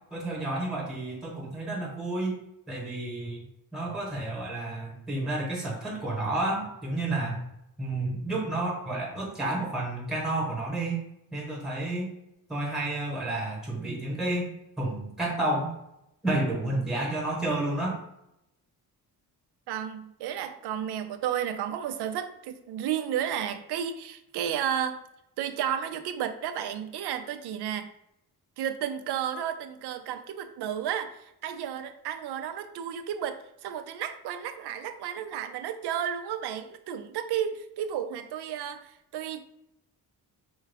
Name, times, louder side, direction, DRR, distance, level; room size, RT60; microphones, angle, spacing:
voice 1, 0.1-2.4 2.7-3.4 3.7-7.4 7.8-11.0 11.3-12.1 12.5-15.7 16.2-18.0, right 2 dB, ahead, -2 dB, 1.0 m, -30 dB
voice 2, 19.7-25.0 25.4-27.9 28.6-39.4, right 9 dB, 90° right, 8 dB, 0.5 m, -32 dB
4.6 x 2.3 x 3.4 m, 0.80 s
wide cardioid pair, 155°, 39 cm